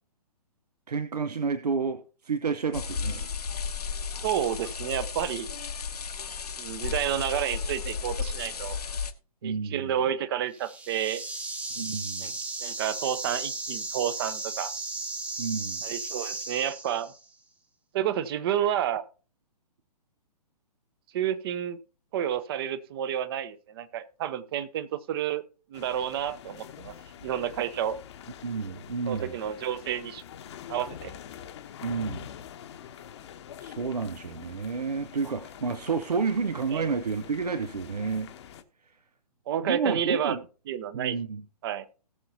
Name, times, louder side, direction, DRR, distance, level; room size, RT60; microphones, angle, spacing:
voice 1, 0.9-2.0 2.2-3.3 9.4-9.9 11.8-12.3 15.4-15.8 28.4-29.3 31.8-32.3 33.6-38.3 39.6-40.4 40.9-41.4, right 5 dB, 70° right, 12 dB, 0.8 m, -30 dB
sound 1, 2.7-9.1, left 6 dB, 70° left, 1.1 m, -34 dB
voice 2, 4.2-5.5 6.6-8.8 9.4-11.2 12.2-12.3 12.6-14.7 15.8-17.1 17.9-19.0 21.1-21.8 22.1-25.4 25.7-26.9 27.2-28.0 29.1-30.2 30.7-31.1 36.7-36.9 39.5-40.4 40.7-41.2 41.6-41.9, right 10 dB, 35° right, 14 dB, 0.9 m, -30 dB
sound 2, 10.5-17.2, right 3 dB, 5° right, 0.9 m, -35 dB
sound 3, 25.7-38.6, left 9 dB, 45° left, 1.0 m, -45 dB
18.5 x 6.7 x 2.8 m, 0.36 s
figure-of-eight pair, 125°, 21 cm